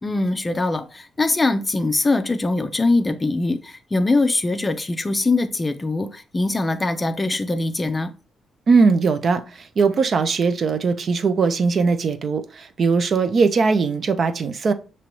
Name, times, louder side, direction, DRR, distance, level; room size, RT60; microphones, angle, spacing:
voice 1, 0.0-8.1, left 2 dB, 20° left, 0.4 m, -22 dB
voice 2, 8.7-14.7, right 4 dB, 45° right, 0.4 m, -20 dB
5.9 x 3.0 x 2.9 m
cardioid pair, 125°, 0 cm